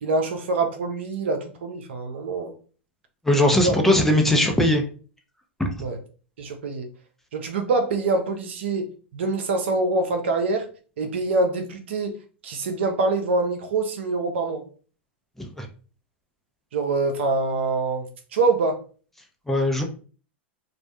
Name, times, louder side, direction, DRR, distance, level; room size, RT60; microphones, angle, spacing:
voice 1, 0.0-2.5 3.6-3.8 5.8-6.0 6.4-6.9 7.3-8.9 9.1-10.7 11.0-12.1 12.4-14.6 16.7-18.0 18.3-18.8, right 3 dB, 70° right, 5 dB, 0.5 m, -25 dB
voice 2, 3.3-4.8 5.6-5.7 15.6-15.7 19.5-19.8, left 1 dB, 5° left, 3 dB, 0.6 m, -19 dB
2.3 x 2.1 x 2.7 m, 0.39 s
hypercardioid pair, 100°, 6 cm